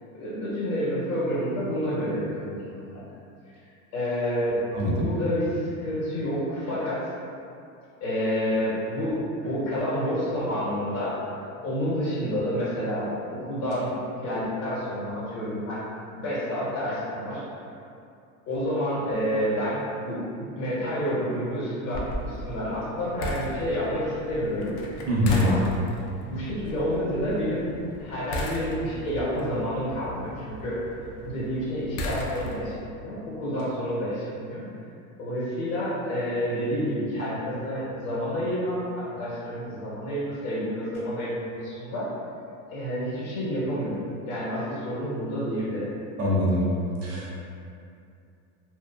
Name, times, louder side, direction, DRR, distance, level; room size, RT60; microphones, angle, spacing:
voice 1, 0.1-3.0 3.5-3.6 3.9-4.6 5.0-7.1 8.0-15.8 16.1-17.4 18.5-24.7 25.3-25.6 26.3-27.6 28.0-30.8 31.2-34.6 35.2-42.1 42.7-45.9, equal, 75° left, -9 dB, 1.4 m, -29 dB
voice 2, 4.7-5.1 25.1-25.5 46.2-46.6 47.0-47.3, left 1 dB, 35° right, -5 dB, 0.6 m, -23 dB
sound 1, 21.9-32.8, equal, 60° left, 0.5 m, -37 dB
2.7 x 2.1 x 2.3 m, 2.5 s
supercardioid pair, 105°, 41 cm